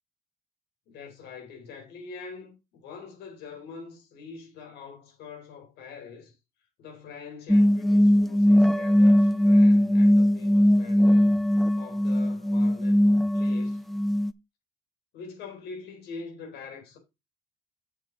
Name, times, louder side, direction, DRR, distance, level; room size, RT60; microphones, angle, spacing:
voice 1, 0.9-6.3 6.8-11.4 11.8-13.8 15.1-17.0, left 5 dB, 75° left, 4.1 m, -44 dB
sound 1, 7.5-14.3, equal, ahead, 0.4 m, -20 dB
7.4 x 6.8 x 4.0 m
cardioid pair, 110°, 17 cm